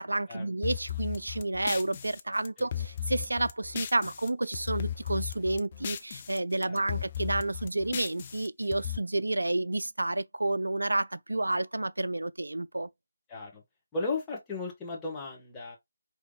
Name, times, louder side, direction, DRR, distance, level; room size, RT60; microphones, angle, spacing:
voice 1, 0.0-12.9, right 2 dB, 70° right, 0.3 m, -30 dB
sound 1, 0.6-4.3 4.5-6.4 6.6-9.0, left 10 dB, 30° left, 0.5 m, -36 dB
voice 2, 13.3-13.6 13.9-15.8, left 3 dB, 10° left, 1.4 m, -35 dB
5.1 x 3.3 x 2.3 m
figure-of-eight pair, 150°, 0 cm